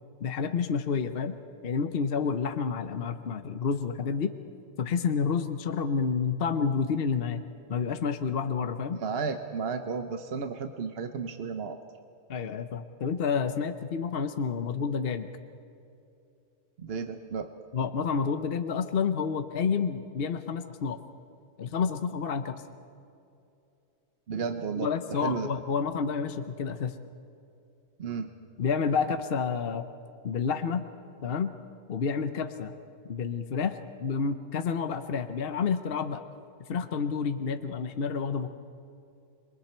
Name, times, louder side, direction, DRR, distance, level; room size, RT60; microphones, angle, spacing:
voice 1, 0.2-1.4 1.6-4.3 4.8-7.4 7.7-9.0 12.3-15.3 17.7-21.0 21.6-22.6 24.8-27.0 28.6-29.9 30.2-30.8 31.2-31.5 31.9-32.7 33.1-36.3 36.7-38.5, left 6 dB, 50° left, 9 dB, 0.9 m, -29 dB
voice 2, 9.0-11.8 16.8-17.5 24.3-25.5 28.0-28.3, right 5 dB, 50° right, 7 dB, 0.9 m, -33 dB
27.0 x 22.5 x 4.4 m, 2.6 s
omnidirectional pair, 1.5 m